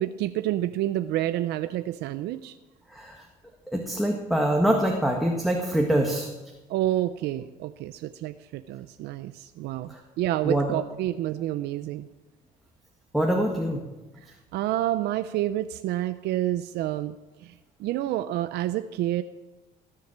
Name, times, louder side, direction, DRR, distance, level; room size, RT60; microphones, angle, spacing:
voice 1, 0.0-2.6 6.7-12.1 14.5-17.5 17.8-19.2, right 13 dB, 80° right, 11 dB, 0.6 m, -29 dB
voice 2, 2.9-3.3 3.7-6.3 9.9-10.0 10.4-10.8 13.1-13.8, right 1 dB, ahead, 0 dB, 1.8 m, -24 dB
18.0 x 7.6 x 7.5 m, 1.1 s
cardioid pair, 110°, 17 cm